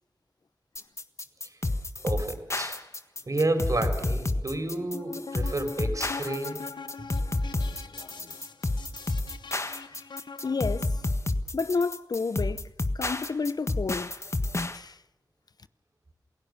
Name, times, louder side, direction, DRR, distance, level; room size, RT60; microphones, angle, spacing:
sound 1, 0.8-14.8, left 2 dB, 40° left, 1.5 m, -30 dB
voice 1, 2.0-2.8 3.3-6.6, right 2 dB, 45° right, 4.7 m, -30 dB
sound 2, 4.8-11.1, left 5 dB, 85° left, 1.0 m, -43 dB
voice 2, 7.2-8.4 10.4-11.0 11.5-14.1 14.7-15.0, left 4 dB, 60° left, 0.7 m, -32 dB
28.0 x 16.5 x 6.7 m
wide cardioid pair, 55°, 8 cm